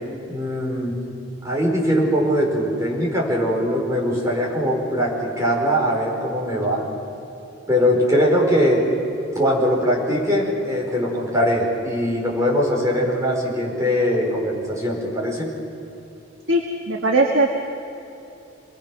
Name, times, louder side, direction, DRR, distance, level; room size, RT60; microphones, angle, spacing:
voice 1, 0.3-1.0 1.4-6.9 7.7-8.8 9.3-15.5, equal, 15° right, -3 dB, 5.0 m, -21 dB
voice 2, 16.5-17.6, right 2 dB, 80° right, 1 dB, 1.7 m, -19 dB
27.5 x 20.0 x 6.2 m, 2.9 s
head